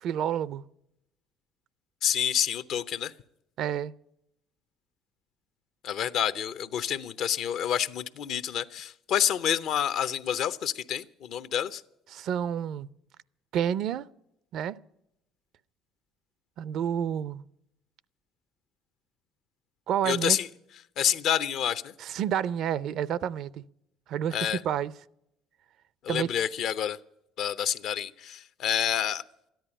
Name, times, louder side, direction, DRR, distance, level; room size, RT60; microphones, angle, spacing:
voice 1, 0.0-0.6 3.6-3.9 12.1-12.9 13.5-14.1 14.5-14.8 16.6-17.4 19.9-20.4 22.0-23.6 24.1-24.9 26.1-26.3, right 9 dB, 65° right, 0.5 m, -29 dB
voice 2, 2.0-3.1 5.8-11.8 20.0-20.5 21.0-21.9 24.3-24.6 26.0-27.0 27.4-29.2, left 9 dB, 65° left, 0.7 m, -28 dB
13.5 x 10.5 x 9.9 m
supercardioid pair, 80°, 0 cm